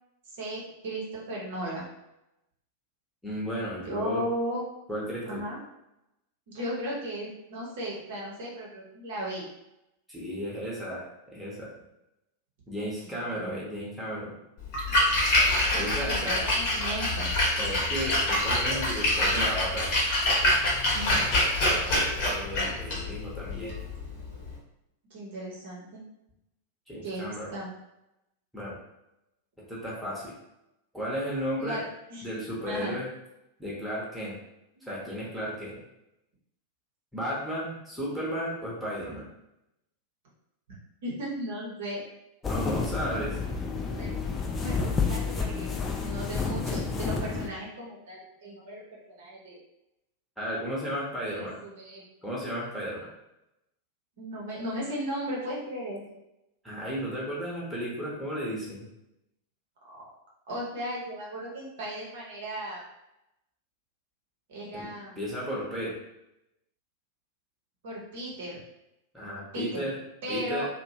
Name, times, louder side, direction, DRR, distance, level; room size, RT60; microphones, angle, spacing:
voice 1, 0.2-1.9 3.8-4.6 5.3-5.6 6.5-9.4 12.8-13.6 15.7-17.3 20.9-22.4 25.1-26.0 27.0-27.8 31.6-31.8 32.1-32.3 32.7-33.0 34.8-34.9 41.0-42.0 44.0-44.1 44.6-45.7 46.0-49.6 51.2-52.1 54.2-56.0 59.9-60.0 60.5-62.8 64.5-65.2 67.8-68.6 69.5-69.8 70.2-70.7, right 1 dB, 55° right, -4 dB, 0.8 m, -36 dB
voice 2, 3.2-4.2 4.9-5.4 10.1-11.0 11.3-11.7 12.7-14.3 15.7-16.4 17.6-19.9 22.3-23.8 26.9-27.5 28.5-28.8 29.7-30.3 30.9-31.8 32.2-33.1 33.6-34.3 34.9-35.8 37.1-39.3 42.5-43.4 50.4-51.5 52.2-53.0 56.6-58.8 64.7-64.8 65.2-65.9 69.1-70.0 70.3-70.6, equal, ahead, -7 dB, 0.9 m, -34 dB
Splash splatter, 14.6-24.5, left 1 dB, 45° left, 0.9 m, -26 dB
sound 1, 42.4-47.5, left 4 dB, 20° left, 0.4 m, -30 dB
2.7 x 2.2 x 2.7 m, 0.88 s
figure-of-eight pair, 90°, 0 cm